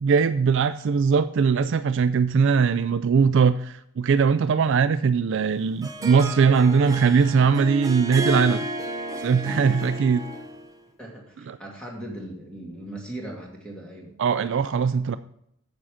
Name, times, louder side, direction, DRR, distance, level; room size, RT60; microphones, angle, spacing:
voice 1, 0.0-8.6 9.2-10.2 14.2-15.2, right 5 dB, 55° right, 12 dB, 0.3 m, -20 dB
Harp, 5.4-10.7, right 1 dB, 15° right, 0.8 m, -32 dB
voice 2, 11.0-14.2, right 1 dB, 5° left, -2 dB, 2.4 m, -39 dB
9.2 x 7.4 x 4.9 m, 0.73 s
head